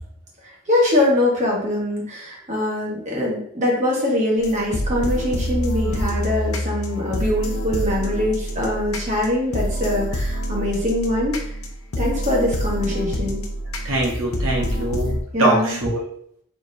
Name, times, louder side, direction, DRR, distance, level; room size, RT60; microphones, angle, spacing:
voice 1, 0.4-11.4 12.0-13.4 15.3-15.8, left 1 dB, 35° right, -3 dB, 1.3 m, -23 dB
sound 1, 4.4-15.2, equal, 90° left, 0.7 m, -26 dB
voice 2, 13.8-16.0, right 1 dB, 75° right, -3 dB, 1.3 m, -22 dB
4.7 x 3.5 x 2.7 m, 0.66 s
head